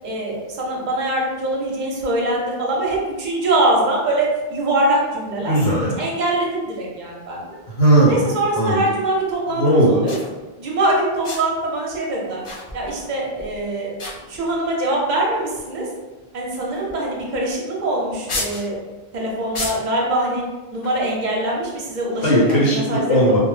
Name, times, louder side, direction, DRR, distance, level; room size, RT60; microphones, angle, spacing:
voice 1, 0.0-5.6 6.0-7.6 8.0-10.1 10.6-12.4 12.7-13.9 14.3-15.9 16.3-18.8 19.1-20.4 20.7-23.2, right 1 dB, 50° right, -2 dB, 0.7 m, -23 dB
voice 2, 5.4-6.0 7.7-8.3 8.5-8.8 9.5-10.1 22.2-23.4, right 1 dB, 80° left, -5 dB, 0.9 m, -17 dB
sound 1, 10.1-10.3 11.2-11.6 12.4-13.1 13.4-13.6 14.0-14.6 15.4-15.5 16.7-17.0 17.3-17.4 18.3-18.7 19.5-20.0 20.8-21.1, left 2 dB, 50° left, 0.4 m, -31 dB
2.1 x 2.0 x 3.1 m, 1.2 s
omnidirectional pair, 1.1 m